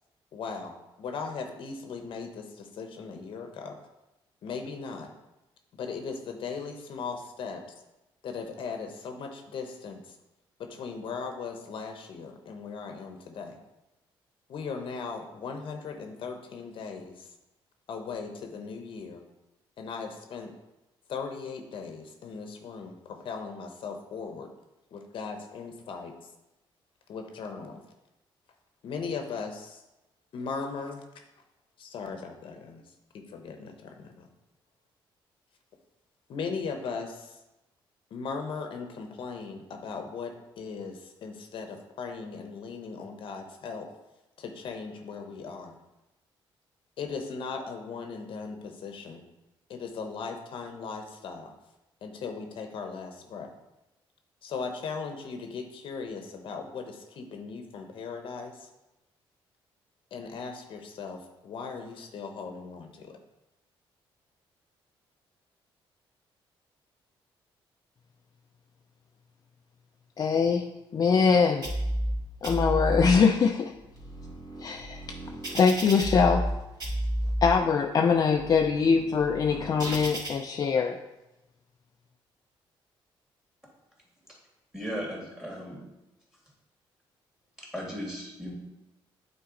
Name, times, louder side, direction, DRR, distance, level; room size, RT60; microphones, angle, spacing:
voice 1, 0.3-3.8 4.4-5.1 5.7-7.6 8.2-10.2 10.6-13.6 14.5-17.3 17.9-19.2 19.8-20.5 21.1-24.5 24.9-26.1 27.1-27.8 28.8-29.8 30.3-31.0 31.8-32.8 33.1-34.3 36.3-37.4 38.1-43.9 44.4-45.8 47.0-49.2 49.7-51.5 52.0-53.5 54.4-58.7 60.1-63.2, left 5 dB, 65° left, 4 dB, 0.8 m, -38 dB
voice 2, 70.2-70.7 70.9-71.7 72.4-73.7 74.6-75.0 75.5-76.5 77.4-81.0, left 5 dB, 40° left, 3 dB, 0.4 m, -23 dB
sound 1, 71.6-72.1 72.4-73.1 73.7-76.5 76.8-77.5 78.1-80.3, right 1 dB, 45° right, 2.3 m, -32 dB
voice 3, 84.7-85.8 87.6-88.5, equal, 5° right, -2 dB, 2.3 m, -36 dB
8.6 x 4.2 x 3.8 m, 0.97 s
cardioid pair, 115°, 10 cm